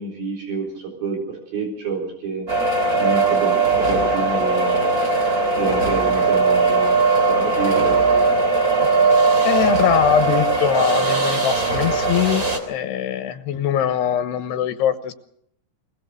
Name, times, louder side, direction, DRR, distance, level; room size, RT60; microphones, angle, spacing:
voice 1, 0.0-2.5 3.0-4.9 5.6-8.3, right 4 dB, 60° right, 0 dB, 5.8 m, -28 dB
projector screen moving, 2.5-12.6, right 3 dB, 25° right, 3.0 m, -19 dB
voice 2, 9.4-15.1, left 10 dB, 80° left, 10 dB, 3.1 m, -22 dB
23.0 x 20.0 x 6.7 m, 0.69 s
omnidirectional pair, 4.8 m